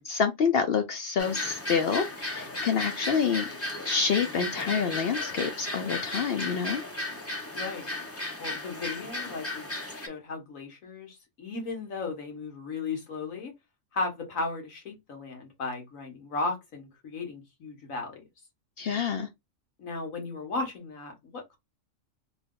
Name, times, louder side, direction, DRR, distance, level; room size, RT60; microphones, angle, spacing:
voice 1, 0.0-3.5 3.8-6.8 18.8-19.3, left 6 dB, 60° left, 0.6 m, -27 dB
sound 1, 1.2-10.1, left 2 dB, 15° left, 0.5 m, -35 dB
voice 2, 7.5-7.9 8.4-9.7 9.9-13.5 13.9-18.2 19.8-21.6, left 3 dB, 85° left, 1.7 m, -35 dB
3.4 x 2.3 x 3.7 m
omnidirectional pair, 1.4 m